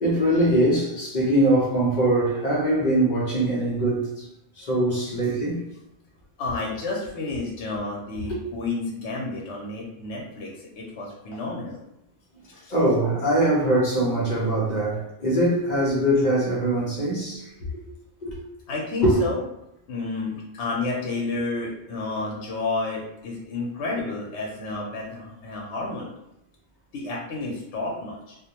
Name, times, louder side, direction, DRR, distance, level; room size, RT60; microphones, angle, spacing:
voice 1, 0.0-4.3 4.6-5.7 8.3-8.4 12.7-17.8 18.2-18.4 19.0-19.2, right 1 dB, 45° left, 0.7 m, -22 dB
voice 2, 6.4-11.8 12.5-12.7 18.7-19.4 19.9-26.1 26.9-28.4, left 3 dB, 85° left, 0.9 m, -31 dB
2.4 x 2.1 x 2.8 m
omnidirectional pair, 1.2 m